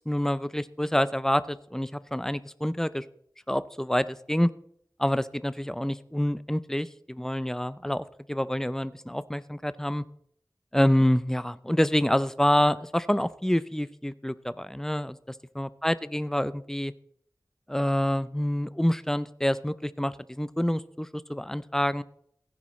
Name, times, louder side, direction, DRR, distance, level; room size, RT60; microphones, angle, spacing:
voice 1, 0.1-3.0 3.5-4.5 5.0-10.0 10.7-15.2 15.6-16.9 17.7-22.0, equal, 5° left, 15 dB, 0.5 m, -27 dB
16.0 x 9.8 x 3.2 m, 0.68 s
wide cardioid pair, 45°, 8 cm